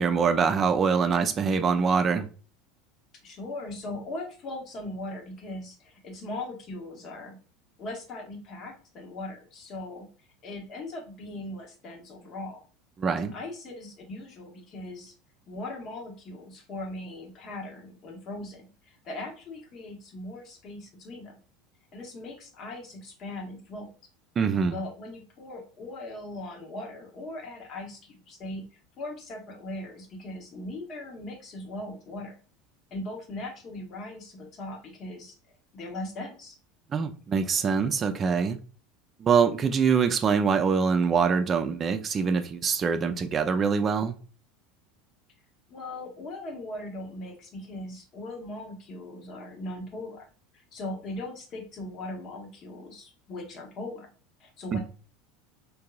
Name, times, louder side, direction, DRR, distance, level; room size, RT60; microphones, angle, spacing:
voice 1, 0.0-2.3 13.0-13.3 24.4-24.8 36.9-38.6 39.2-44.2 54.7-54.8, right 6 dB, 35° right, 0.5 m, -24 dB
voice 2, 3.2-7.4 7.8-10.1 10.4-12.6 13.3-15.1 15.5-21.4 21.9-23.9 24.7-32.3 32.9-35.4 35.7-36.6 45.7-50.2 50.5-54.1 54.4-54.8, left 2 dB, 45° left, 1.1 m, -39 dB
3.7 x 2.7 x 2.3 m
hypercardioid pair, 80°, 0 cm